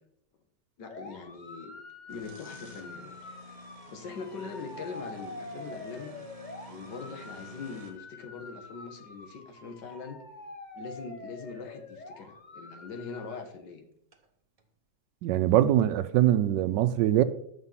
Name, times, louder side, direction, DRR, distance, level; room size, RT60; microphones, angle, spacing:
voice 1, 0.8-1.7 2.1-3.1 3.9-6.2 6.7-10.2 10.7-13.8, left 5 dB, 75° left, 1.9 m, -42 dB
sound 1, 0.9-13.3, left 3 dB, 35° left, 0.9 m, -46 dB
sound 2, 1.9-8.1 11.6-11.7 12.1-12.2 14.1-14.3 14.6-14.7, right 1 dB, 30° right, 0.7 m, -50 dB
voice 2, 15.2-17.2, right 12 dB, 80° right, 1.2 m, -23 dB
8.3 x 6.0 x 5.6 m
omnidirectional pair, 1.9 m